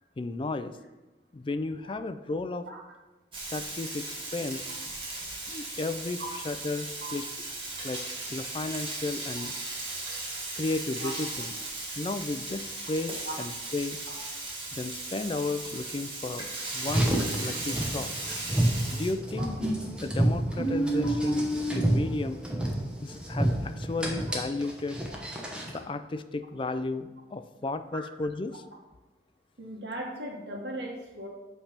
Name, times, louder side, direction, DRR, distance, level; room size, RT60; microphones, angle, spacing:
voice 1, 0.2-0.8 1.3-2.7 3.5-4.7 5.5-6.2 6.5-7.2 7.8-8.0 8.3-9.5 10.5-11.5 12.0-14.0 14.7-18.1 18.9-19.6 20.0-21.5 21.7-22.4 23.0-25.0 25.7-28.6, left 3 dB, 30° left, 10 dB, 0.3 m, -33 dB
Frying (food), 3.3-19.1, right 2 dB, 30° right, 1.4 m, -37 dB
Car, 16.8-25.8, right 1 dB, 5° right, 0.9 m, -29 dB
voice 2, 29.6-31.3, right 1 dB, 75° right, 0 dB, 1.4 m, -38 dB
8.4 x 3.4 x 5.7 m, 1.1 s
head